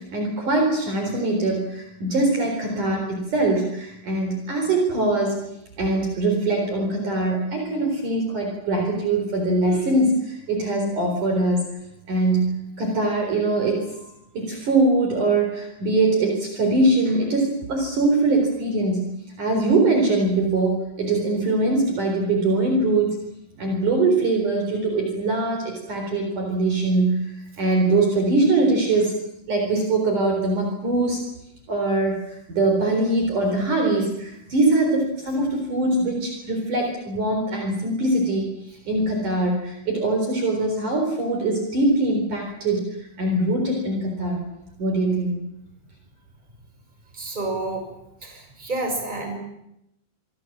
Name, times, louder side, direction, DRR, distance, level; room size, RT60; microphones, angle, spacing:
voice 1, 0.1-5.4 5.8-11.6 12.1-19.1 19.4-23.2 23.6-27.3 27.6-29.2 29.5-31.2 31.7-38.5 38.9-42.8 43.2-44.4 44.8-45.4, right 2 dB, 45° right, 2 dB, 5.3 m, -22 dB
voice 2, 47.1-47.9 48.2-49.4, right 2 dB, 10° right, 4 dB, 6.0 m, -30 dB
26.5 x 23.0 x 7.5 m, 0.82 s
omnidirectional pair, 5.3 m